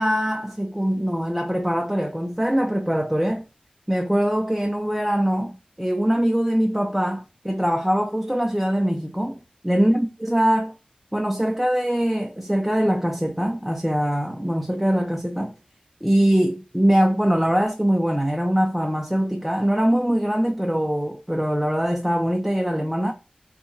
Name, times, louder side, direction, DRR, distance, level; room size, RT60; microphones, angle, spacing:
voice 1, 0.0-3.4 3.9-9.4 9.6-10.7 11.1-15.5 16.0-23.1, equal, 5° right, 0.4 m, -22 dB
2.8 x 2.2 x 2.5 m
wide cardioid pair, 85°, 3 cm